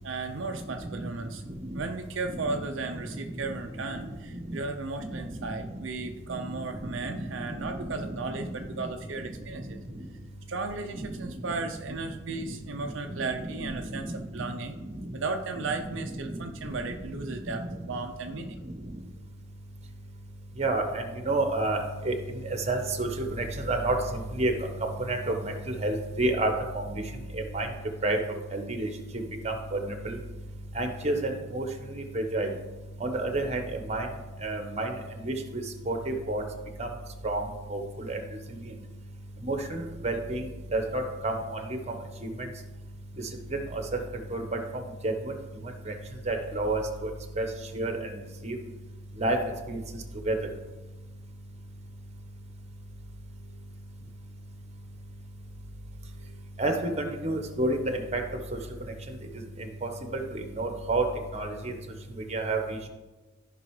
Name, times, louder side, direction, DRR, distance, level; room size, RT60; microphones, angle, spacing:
voice 1, 0.0-1.4 1.7-9.8 10.5-14.7 15.1-18.6, right 3 dB, 65° right, 4 dB, 0.5 m, -35 dB
voice 2, 1.5-1.8 2.3-2.6 4.0-4.6 5.0-5.3 6.5-6.6 7.0-8.1 8.6-8.7 9.6-9.7 13.2-14.5 14.9-15.0 15.7-16.4 17.5-17.7 20.6-22.2 22.4-24.5 25.1-27.0 27.3-27.7 28.0-28.2 28.5-28.9 29.1-30.2 30.7-31.6 31.9-32.5 33.0-34.1 34.4-34.9 35.2-36.4 36.8-36.9 37.2-37.4 37.7-38.2 39.4-40.5 40.7-41.6 42.2-42.3 43.5-44.0 44.3-44.6 45.0-45.1 45.9-46.0 46.3-47.1 47.4-47.5 47.7-48.1 48.4-48.6 49.2-49.4 49.7-49.8 50.2-50.4 56.6-58.2 59.8-61.0 61.3-61.7 62.3-62.9, right 2 dB, 35° right, 4 dB, 1.1 m, -30 dB
14.5 x 5.4 x 3.2 m, 1.2 s
head